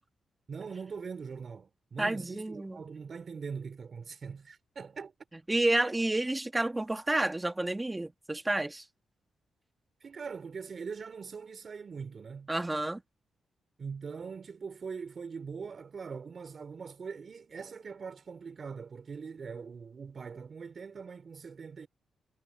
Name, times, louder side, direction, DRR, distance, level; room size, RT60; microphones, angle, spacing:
voice 1, 0.5-5.1 10.0-12.5 13.8-21.9, right 5 dB, 45° right, 5.1 m, -42 dB
voice 2, 2.0-2.8 5.5-8.9 12.5-13.0, right 2 dB, 15° right, 1.8 m, -30 dB
cardioid pair, 120°, 0 cm